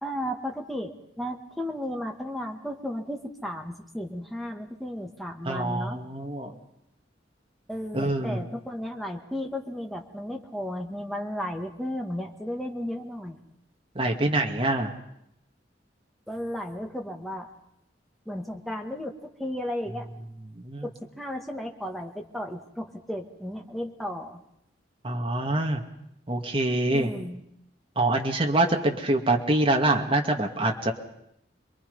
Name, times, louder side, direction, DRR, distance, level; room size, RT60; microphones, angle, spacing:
voice 1, 0.0-6.0 7.7-13.4 16.3-17.5 18.3-20.1 20.8-20.9 21.2-24.4 26.9-27.4, equal, ahead, 2 dB, 1.9 m, -34 dB
voice 2, 5.5-6.6 7.9-8.4 13.9-14.9 20.5-20.9 25.0-25.8 26.3-27.1 28.0-30.9, right 2 dB, 30° right, 2 dB, 2.2 m, -25 dB
27.5 x 22.0 x 5.5 m, 0.77 s
head